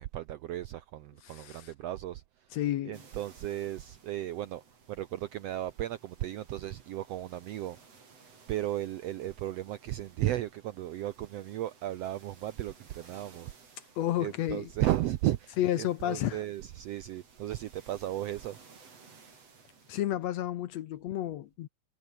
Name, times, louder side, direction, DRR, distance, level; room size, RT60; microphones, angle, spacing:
voice 1, 0.0-2.5 2.8-4.6 4.9-7.8 8.5-13.8 14.2-18.6, right 13 dB, 75° right, 1.5 m, -35 dB
voice 2, 1.2-1.7 2.5-3.0 14.0-14.7 15.6-16.4 19.9-21.7, left 12 dB, 70° left, 1.8 m, -31 dB
sound 1, 2.9-20.0, right 5 dB, 50° right, 5.2 m, -58 dB
omnidirectional pair, 3.7 m